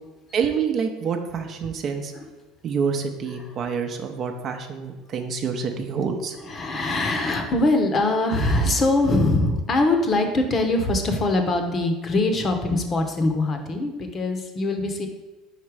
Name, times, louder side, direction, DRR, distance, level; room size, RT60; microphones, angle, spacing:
voice 1, 0.3-2.1 2.6-6.4, right 6 dB, 45° right, 5 dB, 0.7 m, -27 dB
voice 2, 6.4-15.1, left 2 dB, 35° left, 5 dB, 0.8 m, -22 dB
4.9 x 4.2 x 4.8 m, 1.2 s
supercardioid pair, 115°, 0 cm